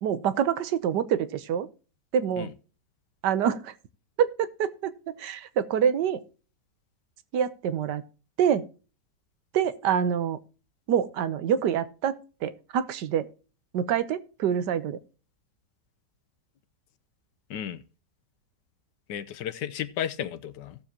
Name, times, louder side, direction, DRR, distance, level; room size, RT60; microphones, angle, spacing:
voice 1, 0.0-1.7 2.1-2.5 3.2-3.7 4.2-6.2 7.3-8.0 8.4-8.7 9.5-10.4 10.9-13.3 13.7-15.0, right 8 dB, 80° right, 1.4 m, -26 dB
voice 2, 17.5-17.8 19.1-20.8, left 10 dB, 85° left, 1.5 m, -33 dB
17.0 x 7.3 x 2.8 m
omnidirectional pair, 1.8 m